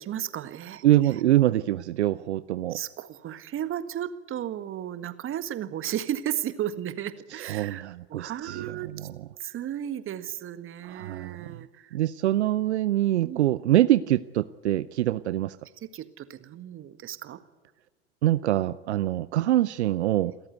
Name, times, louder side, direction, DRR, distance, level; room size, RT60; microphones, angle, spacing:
voice 1, 0.0-0.8 1.1-1.2 2.7-9.1 9.4-12.0 13.2-13.4 15.8-17.4, right 11 dB, 40° right, 11 dB, 1.7 m, -34 dB
voice 2, 0.8-2.8 7.3-9.1 10.8-11.6 11.9-15.6 18.2-20.3, right 14 dB, 75° right, 16 dB, 0.6 m, -24 dB
28.5 x 13.5 x 9.4 m, 1.3 s
figure-of-eight pair, 75°, 34 cm